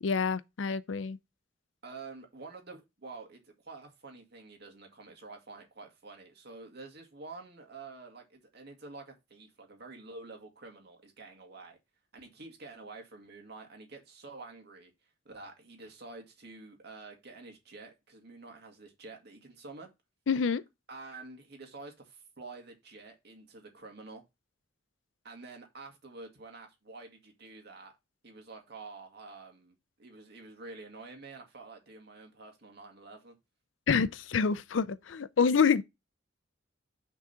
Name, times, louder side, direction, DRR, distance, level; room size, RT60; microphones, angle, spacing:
voice 1, 0.0-1.2 20.3-20.6 33.9-35.8, left 6 dB, 90° left, 0.5 m, -27 dB
voice 2, 1.8-11.8 12.1-14.9 15.3-19.9 20.9-24.2 25.2-27.9 28.2-33.3, right 3 dB, 60° right, 2.1 m, -48 dB
6.2 x 3.8 x 5.5 m
head